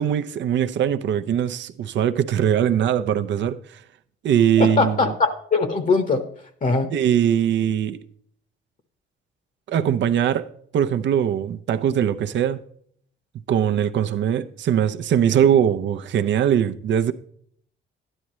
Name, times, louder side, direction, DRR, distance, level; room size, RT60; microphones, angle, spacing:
voice 1, 0.0-3.8 4.2-5.0 6.9-8.0 9.7-12.6 13.5-17.1, right 9 dB, 65° right, 0.7 m, -21 dB
voice 2, 4.6-6.3 6.6-6.9, left 4 dB, 40° left, 1.1 m, -21 dB
12.0 x 9.9 x 3.1 m
cardioid pair, 90°, 20 cm